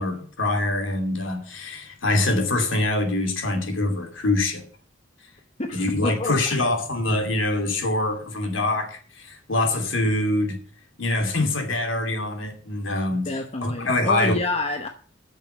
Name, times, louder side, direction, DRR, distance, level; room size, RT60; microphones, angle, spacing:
voice 1, 0.0-4.6 5.7-10.6 11.0-14.3, left 2 dB, 85° left, 2.9 m, -24 dB
voice 2, 5.6-6.3 13.3-14.9, left 2 dB, 30° left, 0.9 m, -28 dB
9.2 x 6.8 x 8.4 m
head